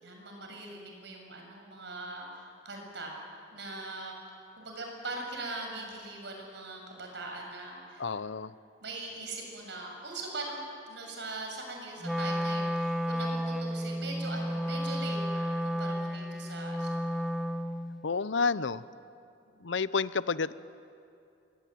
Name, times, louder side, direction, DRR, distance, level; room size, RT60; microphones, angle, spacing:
voice 1, 0.0-3.2 3.5-4.1 4.6-8.0 8.8-10.6 10.9-17.2 19.5-19.6, right 2 dB, 65° right, 1 dB, 7.1 m, -41 dB
voice 2, 8.0-8.5 18.0-18.8 19.6-20.5, left 4 dB, 75° left, 16 dB, 0.7 m, -30 dB
Wind instrument woodwind instrument, 12.0-18.0, equal, ahead, 0.7 m, -32 dB
27.0 x 23.0 x 9.4 m, 2.6 s
head